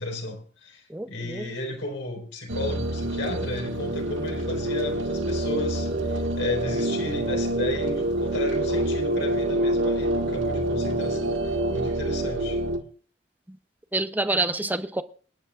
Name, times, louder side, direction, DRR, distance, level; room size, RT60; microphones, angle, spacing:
voice 1, 0.0-12.6, left 2 dB, 75° left, 4.6 m, -33 dB
voice 2, 0.9-1.5 13.9-15.0, right 2 dB, 10° right, 0.6 m, -27 dB
sound 1, 2.5-12.8, right 1 dB, 85° right, 1.8 m, -26 dB
26.0 x 10.5 x 2.4 m
head